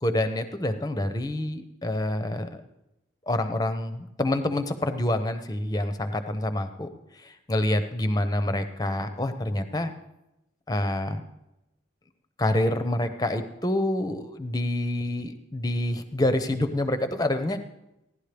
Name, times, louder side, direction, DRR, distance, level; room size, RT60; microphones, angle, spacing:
voice 1, 0.0-2.6 3.3-9.9 10.7-11.2 12.4-17.6, left 1 dB, 20° left, 8 dB, 0.7 m, -27 dB
16.5 x 11.0 x 3.4 m, 0.89 s
head